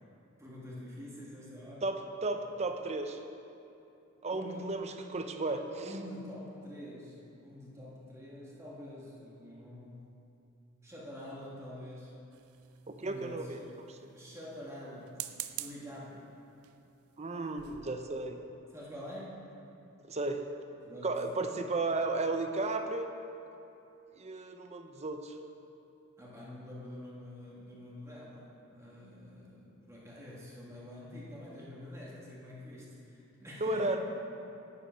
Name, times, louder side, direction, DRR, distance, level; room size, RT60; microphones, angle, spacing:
voice 1, 0.4-1.9 4.3-4.7 5.8-10.1 10.8-12.1 13.0-13.5 14.1-15.2 15.5-16.3 18.7-19.5 20.8-21.2 26.2-34.0, left 1 dB, 15° right, -6 dB, 1.6 m, -46 dB
voice 2, 1.8-3.2 4.2-5.8 12.9-13.6 13.9-14.0 17.2-18.4 20.1-20.4 21.0-23.1 24.2-25.3 33.6-34.0, right 2 dB, 30° right, 6 dB, 0.6 m, -34 dB
sound 1, 12.3-13.1 15.0-15.9 16.6-16.9 17.3-17.4 17.6-17.9, right 13 dB, 90° right, 0.5 m, -43 dB
9.8 x 8.7 x 5.2 m, 2.8 s
head